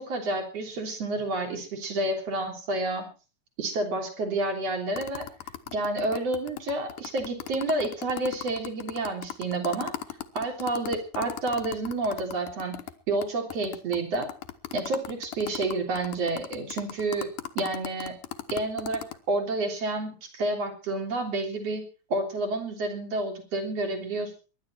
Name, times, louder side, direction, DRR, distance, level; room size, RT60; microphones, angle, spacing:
voice 1, 0.0-3.0 3.6-5.3 5.7-9.9 10.3-12.8 13.1-14.3 14.7-17.3 17.6-18.2 18.5-21.8 22.1-24.4, right 2 dB, 50° right, 3 dB, 4.3 m, -29 dB
sound 1, 5.0-12.9 13.2-13.3 13.5-19.2, left 12 dB, 70° left, 2.5 m, -37 dB
22.5 x 11.0 x 4.5 m, 0.36 s
omnidirectional pair, 3.8 m